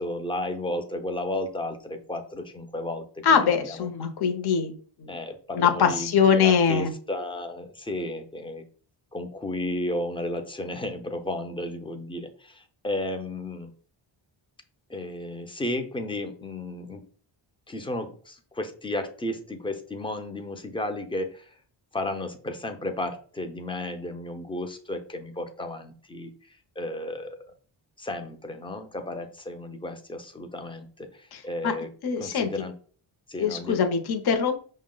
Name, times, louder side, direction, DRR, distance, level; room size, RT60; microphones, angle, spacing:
voice 1, 0.0-3.9 5.1-8.6 9.1-13.7 14.9-17.0 17.7-21.4 21.9-26.3 26.8-27.4 28.0-31.1 31.4-31.9 32.2-32.7 33.3-33.9, left 1 dB, 10° left, 6 dB, 0.5 m, -33 dB
voice 2, 3.2-4.7 5.0-5.2 5.5-6.9 31.3-31.7 32.0-32.5 33.4-34.6, left 6 dB, 50° left, 5 dB, 0.7 m, -23 dB
5.6 x 2.1 x 3.7 m, 0.43 s
wide cardioid pair, 115°, 48 cm